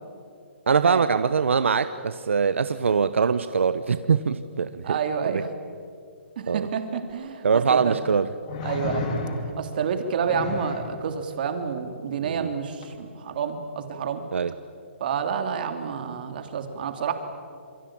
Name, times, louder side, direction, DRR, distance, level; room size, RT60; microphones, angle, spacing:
voice 1, 0.7-5.0 5.3-5.4 6.5-6.7 7.4-8.3 12.2-12.5 14.3-14.5, right 6 dB, 85° right, 12 dB, 1.0 m, -23 dB
voice 2, 4.8-5.5 6.4-8.0 8.6-14.2 15.0-17.1, right 6 dB, 45° right, 6 dB, 3.1 m, -29 dB
sound 1, 7.1-7.2 8.5-9.7 10.2-10.9 12.8-12.9, left 2 dB, 35° left, 3.5 m, -31 dB
28.5 x 22.5 x 8.9 m, 2.4 s
hypercardioid pair, 160°, 7 cm